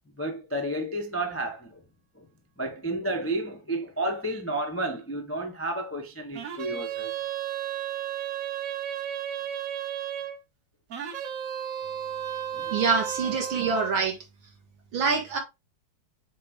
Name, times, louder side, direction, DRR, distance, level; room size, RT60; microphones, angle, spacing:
voice 1, 0.2-1.8 2.2-2.3 2.6-7.1 12.5-12.7, right 1 dB, 20° left, 0.3 m, -31 dB
sound 1, 6.3-10.4 10.9-13.9, right 10 dB, 55° right, 1.0 m, -33 dB
voice 2, 12.7-14.2 14.9-15.4, right 5 dB, 75° right, 2.4 m, -25 dB
7.5 x 3.6 x 3.5 m
omnidirectional pair, 2.2 m